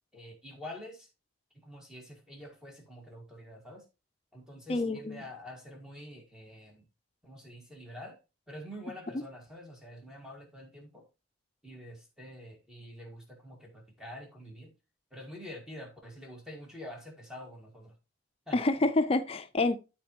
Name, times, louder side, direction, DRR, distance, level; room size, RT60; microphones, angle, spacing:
voice 1, 0.1-1.1 1.5-3.9 4.3-6.9 7.2-8.2 8.5-11.1 11.6-14.7 15.1-17.9 18.5-18.6, left 1 dB, 5° right, 1.7 m, -47 dB
voice 2, 4.7-5.2 18.5-19.8, left 2 dB, 30° left, 0.4 m, -27 dB
12.5 x 4.3 x 2.9 m
head